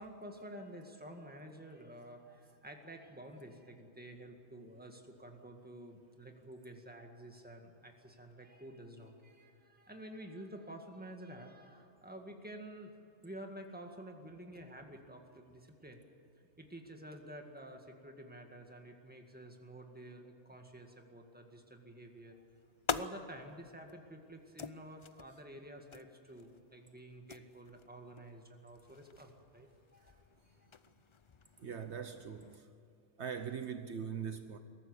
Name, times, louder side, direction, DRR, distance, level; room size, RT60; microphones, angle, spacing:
voice 1, 0.0-13.0 13.2-16.1 16.6-22.4 22.9-30.0 30.6-30.7, right 1 dB, 5° right, 1.9 m, -50 dB
sound 1, 22.1-32.6, left 5 dB, 50° left, 0.3 m, -47 dB
voice 2, 31.6-32.7 33.2-34.6, right 7 dB, 65° right, 1.2 m, -41 dB
22.0 x 14.0 x 9.8 m
omnidirectional pair, 1.3 m